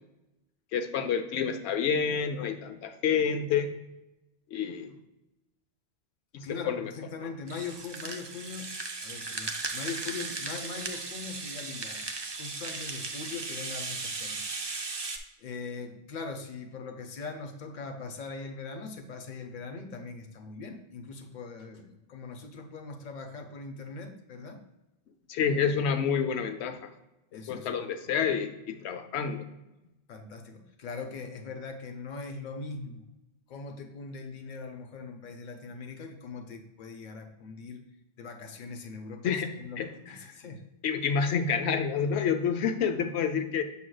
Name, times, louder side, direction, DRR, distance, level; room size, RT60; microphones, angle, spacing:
voice 1, 0.7-3.7 4.5-4.9 6.3-6.9 25.3-26.8 27.5-29.5 39.2-39.5 39.8-39.9 40.8-43.6, left 6 dB, 90° left, 8 dB, 0.9 m, -28 dB
voice 2, 6.4-8.7 9.0-12.1 12.3-14.4 14.7-14.8 15.4-24.6 27.3-27.9 30.1-33.1 33.5-37.8 38.2-40.6, left 4 dB, 50° left, 6 dB, 0.8 m, -41 dB
Rattle (instrument), 7.5-15.2, right 3 dB, 35° right, 0.4 m, -37 dB
7.0 x 6.2 x 2.3 m, 0.97 s
omnidirectional pair, 1.1 m